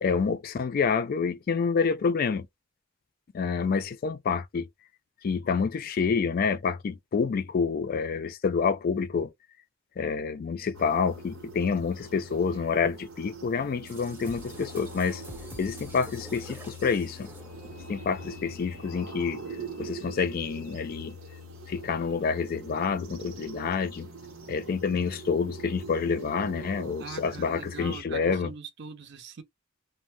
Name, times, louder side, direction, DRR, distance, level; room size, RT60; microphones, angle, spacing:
voice 1, 0.0-2.5 3.3-4.7 5.2-9.3 10.0-15.2 15.6-17.3 17.9-19.4 19.8-21.2 21.7-24.1 24.5-28.5, left 5 dB, 45° left, 0.3 m, -28 dB
sound 1, 10.7-28.0, right 2 dB, 90° right, 0.9 m, -43 dB
sound 2, 13.9-18.0, right 1 dB, 10° right, 0.6 m, -47 dB
voice 2, 27.0-29.4, right 5 dB, 55° right, 0.6 m, -42 dB
2.6 x 2.0 x 3.2 m
head